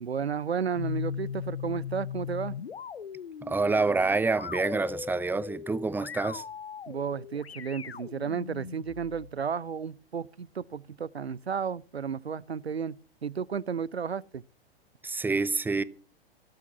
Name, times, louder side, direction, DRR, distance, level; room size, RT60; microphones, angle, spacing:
voice 1, 0.0-2.6 6.9-12.9 13.2-14.4, right 6 dB, 85° right, 0.7 m, -33 dB
sound 1, 0.7-9.3, left 8 dB, 75° left, 0.9 m, -39 dB
voice 2, 3.5-6.4 15.0-15.8, right 3 dB, 5° right, 0.7 m, -27 dB
17.0 x 8.4 x 6.8 m
figure-of-eight pair, 100°, 31 cm